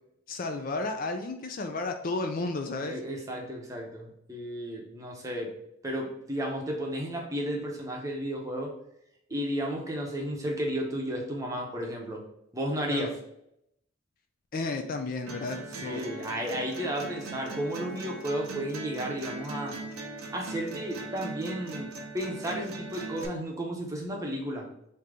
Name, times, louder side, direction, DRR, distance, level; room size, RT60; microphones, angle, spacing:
voice 1, 0.3-2.9 12.9-13.1 14.5-16.1, left 3 dB, 40° left, 5 dB, 0.3 m, -33 dB
voice 2, 2.9-5.5 5.8-8.7 9.3-12.2 12.5-13.2 15.8-19.8 20.3-24.7, equal, 15° right, -1 dB, 0.7 m, -33 dB
sound 1, 15.3-23.3, right 2 dB, 90° right, 0.7 m, -40 dB
3.7 x 2.8 x 4.7 m, 0.78 s
head